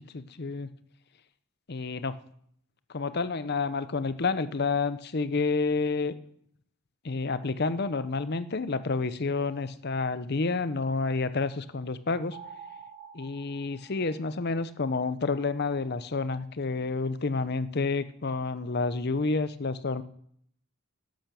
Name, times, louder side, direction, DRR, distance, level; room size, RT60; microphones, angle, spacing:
voice 1, 0.1-0.7 1.7-2.2 2.9-6.2 7.0-12.4 13.1-20.0, left 4 dB, 45° left, 14 dB, 0.7 m, -29 dB
sound 1, 12.3-14.8, right 6 dB, 85° right, 3.5 m, -48 dB
12.0 x 10.5 x 6.9 m, 0.67 s
head